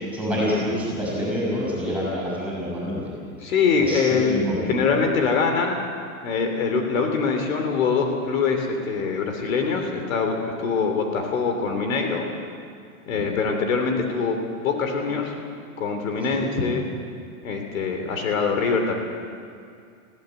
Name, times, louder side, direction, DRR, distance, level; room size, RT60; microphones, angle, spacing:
voice 1, 0.1-3.1 3.8-5.0 13.1-13.3 16.3-16.4, equal, 5° right, -5 dB, 6.3 m, -27 dB
voice 2, 3.4-5.8 6.2-12.2 13.1-15.3 15.8-16.9 17.4-18.9, left 5 dB, 65° left, 4 dB, 3.2 m, -23 dB
21.0 x 16.0 x 7.9 m, 2.3 s
supercardioid pair, 175°, 43 cm